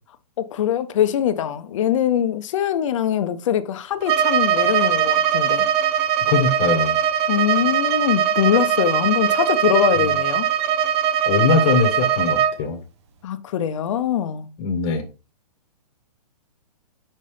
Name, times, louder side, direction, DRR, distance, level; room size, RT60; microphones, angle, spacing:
voice 1, 0.4-5.7 7.3-10.5 13.2-14.5, left 10 dB, 50° left, 0.7 m, -22 dB
Bowed string instrument, 4.0-12.6, right 9 dB, 40° right, 0.8 m, -20 dB
voice 2, 6.3-7.0 11.3-12.8 14.6-15.1, left 4 dB, 30° left, 1.2 m, -21 dB
5.4 x 5.3 x 3.4 m
hypercardioid pair, 155°, 21 cm